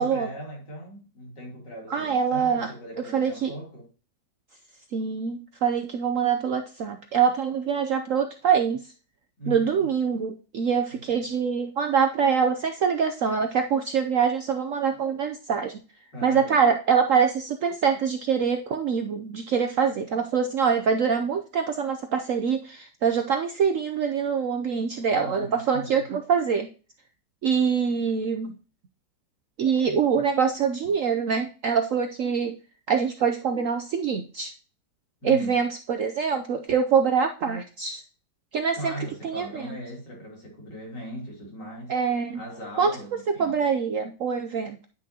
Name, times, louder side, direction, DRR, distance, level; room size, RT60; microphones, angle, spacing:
voice 1, 0.0-3.9 9.4-9.9 11.1-11.3 16.1-16.6 25.1-26.1 35.2-35.6 38.8-41.9 42.3-43.6, equal, 70° left, 3.8 m, -39 dB
voice 2, 1.9-2.7 3.1-3.5 4.9-8.8 9.5-15.8 16.2-26.7 27.4-28.5 29.6-32.5 32.9-34.5 35.2-38.0 38.5-38.9 39.2-39.7 41.9-42.4 42.8-42.9 43.3-44.8, right 6 dB, 65° right, 0.8 m, -24 dB
9.8 x 6.0 x 2.8 m
omnidirectional pair, 1.9 m